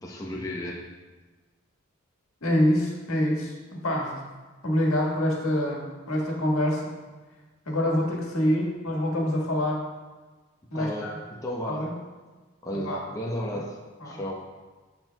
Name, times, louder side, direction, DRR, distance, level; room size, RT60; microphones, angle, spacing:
voice 1, 0.0-0.8 10.8-11.9 12.6-13.8 14.0-14.5, equal, 15° left, -3 dB, 0.7 m, -33 dB
voice 2, 2.4-4.1 4.6-6.9 7.6-9.8 10.7-11.1 11.7-11.9 12.7-13.0 13.5-13.6 14.0-14.2, left 1 dB, 90° left, -2 dB, 1.6 m, -26 dB
13.5 x 4.5 x 2.3 m, 1.3 s
head